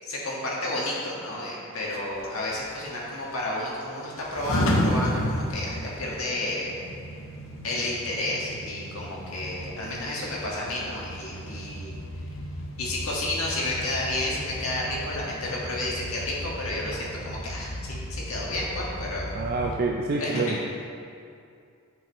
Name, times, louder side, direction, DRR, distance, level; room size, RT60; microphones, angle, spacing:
voice 1, 0.0-6.7 7.6-11.9 12.8-19.3 20.2-20.6, left 1 dB, 90° left, -4 dB, 1.6 m, -31 dB
sound 1, 1.9-19.8, equal, 70° left, 0.8 m, -34 dB
voice 2, 19.4-20.6, right 3 dB, 45° right, 0 dB, 0.4 m, -27 dB
8.7 x 5.4 x 3.0 m, 2.4 s
head